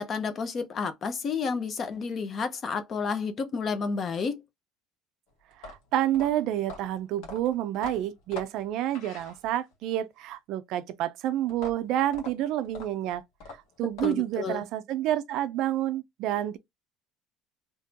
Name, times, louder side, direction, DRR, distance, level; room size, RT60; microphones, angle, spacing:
voice 1, 0.0-4.4 14.0-14.6, left 5 dB, 25° left, 0.5 m, -31 dB
sound 1, 5.5-9.8 11.5-14.4, left 3 dB, 70° left, 1.5 m, -44 dB
voice 2, 5.6-13.2 13.8-16.6, right 12 dB, 50° right, 0.4 m, -29 dB
3.6 x 2.9 x 2.8 m
cardioid pair, 175°, 0 cm